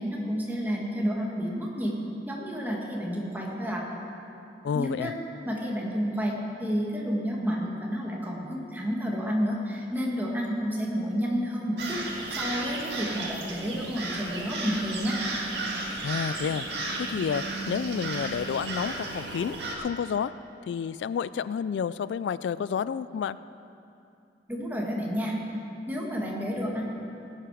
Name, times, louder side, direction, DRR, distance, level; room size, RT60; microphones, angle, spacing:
voice 1, 0.0-1.9 2.3-3.8 4.7-5.1 5.4-15.2 24.5-25.4 25.9-26.8, equal, 10° right, -2 dB, 1.9 m, -30 dB
voice 2, 4.6-5.1 16.0-16.7 17.0-20.3 20.7-23.4, left 7 dB, 85° left, 16 dB, 0.3 m, -30 dB
sound 1, 11.8-19.8, right 2 dB, 75° right, 1.9 m, -34 dB
18.0 x 9.1 x 5.0 m, 2.7 s
head